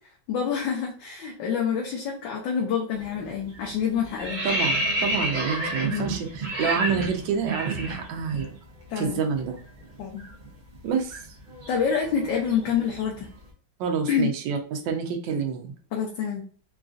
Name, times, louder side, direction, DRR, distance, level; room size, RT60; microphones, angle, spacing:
voice 1, 0.3-4.4 5.9-6.2 8.9-9.2 10.0-10.2 11.7-13.3 14.1-14.3 15.9-16.5, left 7 dB, 80° left, -1 dB, 1.3 m, -27 dB
sound 1, 2.9-3.2 3.5-8.5 8.8-8.9 9.3-13.3, right 1 dB, 45° right, 0.6 m, -30 dB
voice 2, 4.4-8.6 9.0-9.6 10.8-11.3 13.8-15.7, right 6 dB, 80° right, 4 dB, 1.3 m, -28 dB
3.8 x 2.5 x 2.4 m, 0.43 s
omnidirectional pair, 2.0 m